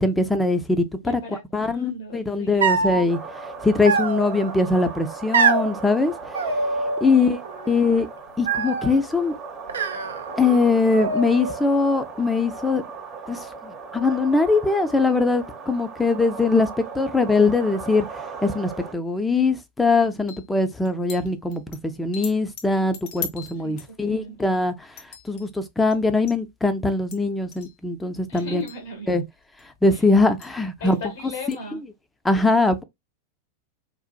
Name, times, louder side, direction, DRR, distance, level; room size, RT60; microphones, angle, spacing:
voice 1, 0.0-1.2 1.5-3.2 3.6-6.1 7.0-7.4 7.7-8.1 8.4-9.3 10.4-12.8 13.3-18.1 18.4-24.7 25.3-28.6 29.1-29.2 29.8-31.0 32.2-32.8, left 3 dB, 10° left, 0.5 m, -21 dB
voice 2, 1.0-2.7 7.1-7.3 23.5-24.3 28.3-29.1 29.9-30.0 30.8-31.8, left 1 dB, 70° left, 1.2 m, -37 dB
sound 1, 2.6-3.0 3.8-4.5 5.3-5.7 6.3-7.2 7.5-8.0 8.5-9.0 9.7-10.6 10.9-11.7, right 4 dB, 70° right, 0.5 m, -24 dB
sound 2, 3.1-18.9, right 4 dB, 25° right, 0.8 m, -37 dB
sound 3, 20.3-20.4 20.8-21.8 22.1-24.6 25.0-25.5 25.9-26.0 26.3-26.4 26.9-27.2 27.5-27.7 28.4-28.8 29.6-29.7 30.4-30.5 30.8-31.0 31.5-31.6, left 7 dB, 50° left, 0.8 m, -39 dB
3.9 x 2.4 x 2.3 m
figure-of-eight pair, 90°, 0 cm